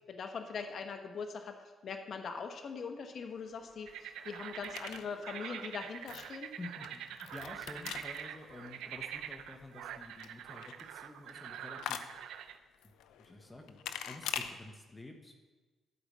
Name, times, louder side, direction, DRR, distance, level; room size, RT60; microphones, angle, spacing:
voice 1, 0.1-6.5, left 5 dB, 55° left, 5 dB, 1.1 m, -42 dB
sound 1, 3.3-14.5, left 9 dB, 85° left, 0.6 m, -46 dB
sound 2, 3.9-12.6, right 10 dB, 85° right, 0.6 m, -45 dB
voice 2, 6.6-12.1 13.2-13.8 14.1-15.5, left 2 dB, 20° left, 3 dB, 1.3 m, -50 dB
12.5 x 5.0 x 7.5 m, 1.3 s
cardioid pair, 90°, 0 cm